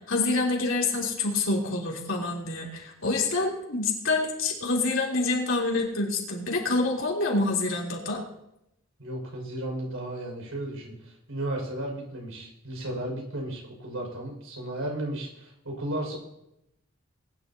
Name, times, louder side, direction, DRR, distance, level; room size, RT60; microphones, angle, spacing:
voice 1, 0.1-8.2, left 3 dB, 65° left, -2 dB, 3.5 m, -27 dB
voice 2, 9.0-16.2, right 1 dB, 85° right, 0 dB, 5.7 m, -34 dB
21.0 x 11.0 x 2.9 m, 0.82 s
head